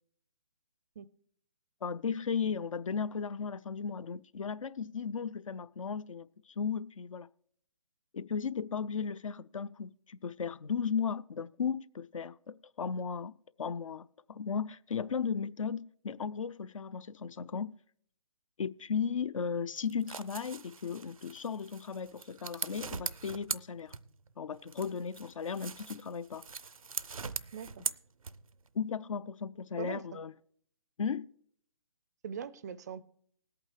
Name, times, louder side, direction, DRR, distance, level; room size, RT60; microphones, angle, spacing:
voice 1, 1.8-7.3 8.1-17.7 18.6-23.9 24.4-26.4 28.7-30.3 31.0-31.3, left 6 dB, 70° left, 0.4 m, -36 dB
sound 1, 19.8-24.3 24.7-28.7, right 5 dB, 90° right, 0.5 m, -41 dB
voice 2, 27.5-27.8 29.8-30.0 32.2-33.0, right 7 dB, 30° right, 0.4 m, -41 dB
19.5 x 8.5 x 3.2 m
figure-of-eight pair, 140°, 17 cm